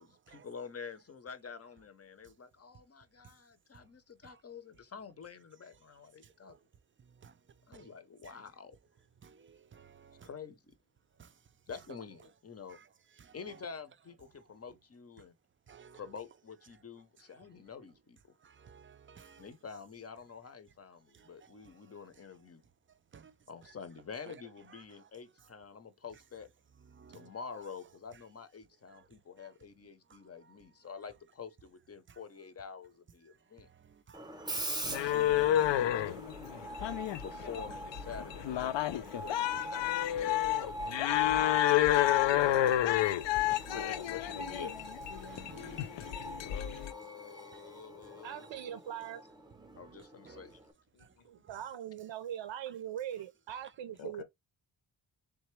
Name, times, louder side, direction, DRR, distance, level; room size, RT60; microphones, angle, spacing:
voice 1, 0.0-6.6 7.7-8.8 10.2-10.7 11.7-12.8 13.3-15.4 15.9-18.2 19.4-22.6 23.5-26.5 27.1-33.7 34.8-36.3 37.2-40.9 41.3-42.1 42.5-42.9 46.4-48.5 49.7-50.6, left 6 dB, 30° left, 0.7 m, -48 dB
voice 2, 9.2-10.3 11.7-11.8 12.7-12.8 13.4-13.6 15.7-16.1 18.6-19.5 23.1-23.3 23.6-23.7 24.3-24.4 24.7-24.8 26.9-27.6 34.1-34.2 34.8-35.9 36.7-36.9 37.4-37.5 42.5-42.6 43.5-43.7 45.3-46.1 46.5-46.7 49.8-49.9 50.3-50.4 51.5-51.6, right 6 dB, 30° right, 0.4 m, -55 dB
Screech, 34.1-50.7, right 1 dB, 10° right, 0.8 m, -44 dB
sound 1, 34.8-46.9, left 12 dB, 70° left, 0.5 m, -30 dB
voice 3, 43.6-44.8 50.9-51.0 54.0-54.2, left 8 dB, 85° left, 1.0 m, -42 dB
voice 4, 48.2-49.2 51.2-54.2, right 10 dB, 75° right, 0.6 m, -41 dB
3.9 x 3.3 x 3.1 m
wide cardioid pair, 140°, 46 cm